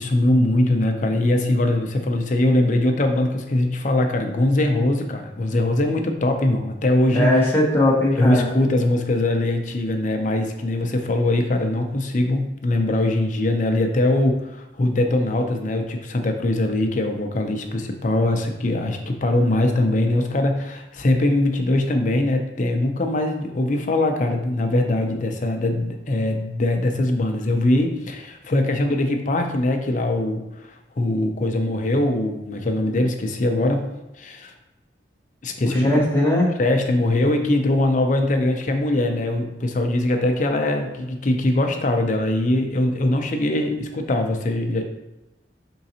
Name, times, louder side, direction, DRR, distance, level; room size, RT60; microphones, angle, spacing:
voice 1, 0.0-7.3 8.2-33.8 34.2-34.5 35.4-36.0 36.6-44.8, left 1 dB, 45° left, 4 dB, 0.5 m, -22 dB
voice 2, 7.1-8.5 35.6-36.5, left 1 dB, 10° left, -4 dB, 0.8 m, -19 dB
5.0 x 3.8 x 2.8 m, 0.94 s
head